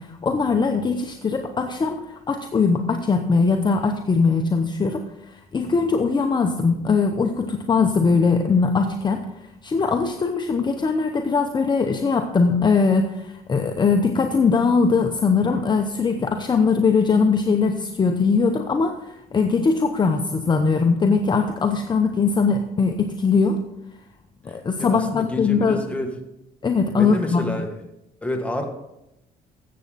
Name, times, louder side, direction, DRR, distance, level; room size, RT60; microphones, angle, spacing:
voice 1, 0.0-5.0 5.3-9.3 9.6-23.6 24.4-25.8 26.6-27.4, left 4 dB, 25° left, 5 dB, 0.8 m, -21 dB
voice 2, 24.5-26.1 27.0-27.7 28.2-28.7, left 1 dB, 5° left, 3 dB, 1.8 m, -29 dB
14.0 x 8.1 x 4.1 m, 0.89 s
cardioid pair, 110°, 17 cm